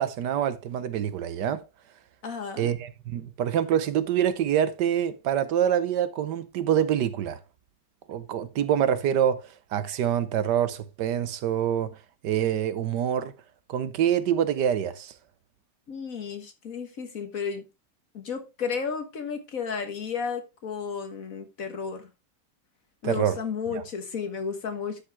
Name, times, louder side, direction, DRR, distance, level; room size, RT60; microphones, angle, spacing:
voice 1, 0.0-1.6 2.6-7.4 8.1-12.0 12.2-13.3 13.7-15.1 23.0-23.4 23.7-23.8, right 9 dB, 75° right, 1.4 m, -26 dB
voice 2, 2.2-2.7 15.9-17.6 18.1-22.1 23.0-25.0, left 6 dB, 55° left, 1.7 m, -33 dB
12.0 x 5.4 x 3.5 m
omnidirectional pair, 1.8 m